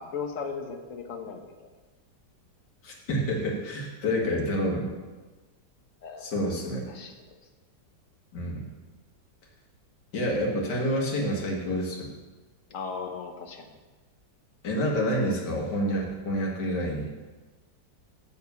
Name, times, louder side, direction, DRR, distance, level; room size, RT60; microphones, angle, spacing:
voice 1, 0.0-1.7 6.0-6.4 6.9-7.1 12.7-13.7, left 5 dB, 50° left, 4 dB, 1.3 m, -37 dB
voice 2, 2.8-4.9 6.2-6.8 8.3-8.6 10.1-12.1 14.6-17.1, equal, 70° left, -1 dB, 2.4 m, -28 dB
7.2 x 7.1 x 6.9 m, 1.2 s
omnidirectional pair, 1.9 m